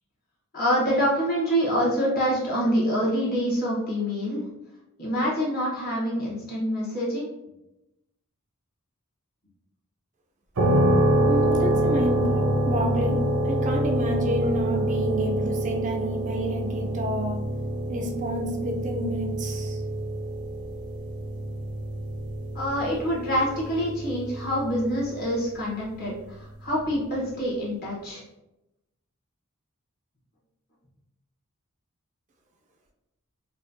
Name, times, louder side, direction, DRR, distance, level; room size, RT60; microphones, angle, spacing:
voice 1, 0.5-4.4 5.0-7.3 22.5-28.2, equal, 45° left, -5 dB, 1.2 m, -26 dB
sound 1, 10.6-25.2, right 1 dB, 80° right, 0.6 m, -26 dB
voice 2, 11.2-17.4 17.9-19.8, equal, 35° right, 1 dB, 0.4 m, -30 dB
4.2 x 2.2 x 2.7 m, 0.94 s
head